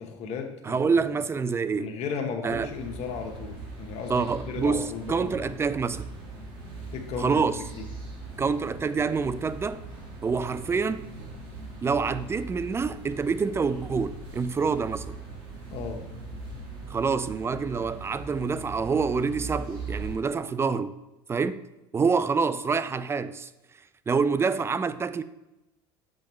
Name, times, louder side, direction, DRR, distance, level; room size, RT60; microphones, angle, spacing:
voice 1, 0.0-0.9 1.7-5.5 6.9-7.4 15.7-16.0, left 6 dB, 55° left, 4 dB, 1.1 m, -35 dB
voice 2, 0.6-1.9 2.4-2.7 4.1-6.1 7.2-7.6 8.4-9.8 10.2-11.1 11.8-15.2 16.9-20.9 21.3-21.6 21.9-23.5 24.1-25.2, right 5 dB, 20° right, 14 dB, 0.4 m, -27 dB
sound 1, 2.5-20.2, right 3 dB, 75° right, 2.0 m, -40 dB
6.9 x 5.1 x 3.1 m, 0.96 s
hypercardioid pair, 80°, 13 cm